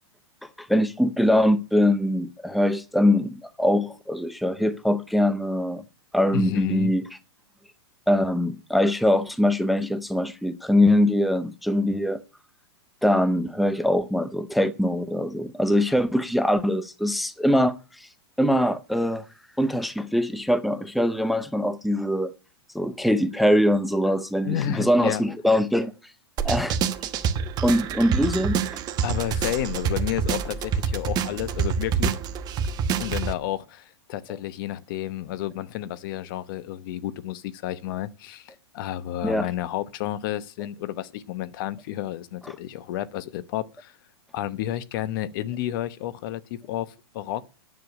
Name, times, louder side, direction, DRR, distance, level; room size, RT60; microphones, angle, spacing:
voice 1, 0.6-5.8 6.1-7.0 8.1-12.2 13.0-18.1 18.4-19.2 19.6-22.3 22.7-25.9 26.4-26.8 27.6-28.8 34.3-34.4 39.2-39.5, left 1 dB, ahead, 0.6 m, -22 dB
voice 2, 6.3-6.9 24.4-25.2 29.0-32.1 33.0-43.9 44.3-47.4, left 13 dB, 50° left, 0.9 m, -31 dB
sound 1, 26.4-33.3, right 6 dB, 30° right, 1.1 m, -27 dB
9.8 x 6.8 x 8.5 m
hypercardioid pair, 135°, 14 cm